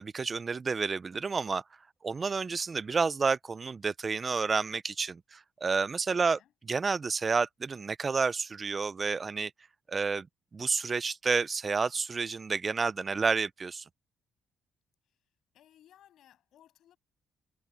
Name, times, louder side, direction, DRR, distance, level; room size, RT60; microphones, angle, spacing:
voice 1, 0.0-1.6 2.0-6.4 6.7-9.5 9.9-10.3 10.5-13.8, right 4 dB, 35° right, 0.5 m, -30 dB
voice 2, 6.1-6.5 15.0-15.3 15.5-17.0, left 11 dB, 75° left, 7.2 m, -61 dB
cardioid pair, 90°, 0 cm